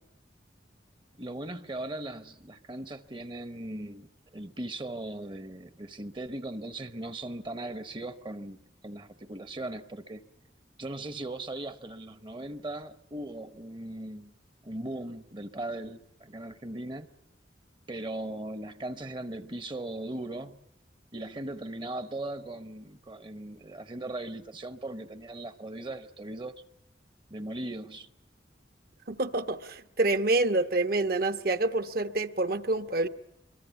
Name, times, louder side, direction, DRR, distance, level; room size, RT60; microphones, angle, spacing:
voice 1, 1.2-8.6 8.8-10.2 10.8-14.3 14.6-17.1 17.9-20.6 21.1-26.6 27.3-28.1, right 1 dB, 25° right, 0.9 m, -38 dB
voice 2, 29.1-33.1, right 2 dB, 55° right, 1.1 m, -27 dB
24.0 x 23.0 x 8.2 m
head